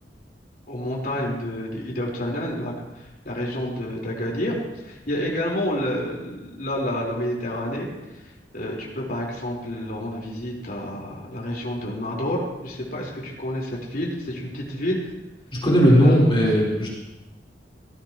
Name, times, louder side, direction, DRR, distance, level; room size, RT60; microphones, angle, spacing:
voice 1, 0.7-8.2 8.5-15.1 15.9-16.2, left 1 dB, 55° left, -3 dB, 4.5 m, -29 dB
voice 2, 15.6-16.9, equal, 30° left, -5 dB, 4.3 m, -17 dB
18.0 x 16.5 x 3.1 m, 1.0 s
head